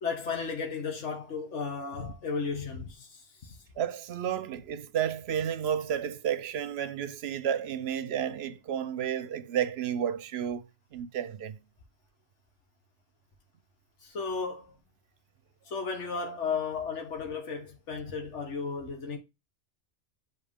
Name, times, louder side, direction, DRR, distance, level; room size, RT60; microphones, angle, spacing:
voice 1, 0.0-3.6 14.0-14.8 15.6-19.2, left 5 dB, 90° left, 1.5 m, -34 dB
voice 2, 3.8-10.7 10.9-11.6, right 9 dB, 65° right, 0.8 m, -31 dB
7.2 x 3.9 x 3.5 m
omnidirectional pair, 1.2 m